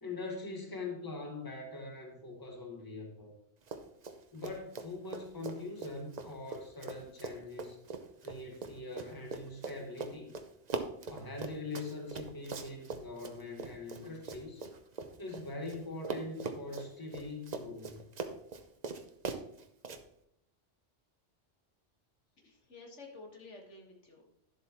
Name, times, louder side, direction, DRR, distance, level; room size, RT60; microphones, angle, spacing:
voice 1, 0.0-3.3 4.3-7.8 8.2-10.3 11.1-14.6 15.2-18.0, left 3 dB, 20° left, 1 dB, 1.5 m, -42 dB
Run, 3.6-4.2 4.4-15.8 16.0-20.0, right 4 dB, 40° right, 0.7 m, -41 dB
voice 2, 22.4-24.3, left 3 dB, 70° left, 1 dB, 1.9 m, -52 dB
11.0 x 7.6 x 3.0 m, 0.72 s
omnidirectional pair, 1.2 m